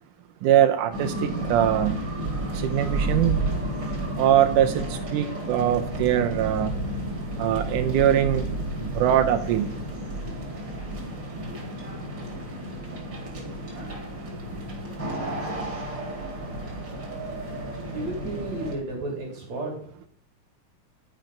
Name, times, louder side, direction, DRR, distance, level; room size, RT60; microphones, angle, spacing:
voice 1, 0.4-2.0 2.5-3.6 4.2-6.7 7.4-8.5 8.8-9.7, right 11 dB, 90° right, 2.3 m, -22 dB
sound 1, 0.9-18.7, right 1 dB, 35° right, 3.9 m, -32 dB
voice 2, 17.9-19.7, right 2 dB, 60° right, 4.0 m, -32 dB
13.5 x 9.2 x 5.3 m
omnidirectional pair, 3.6 m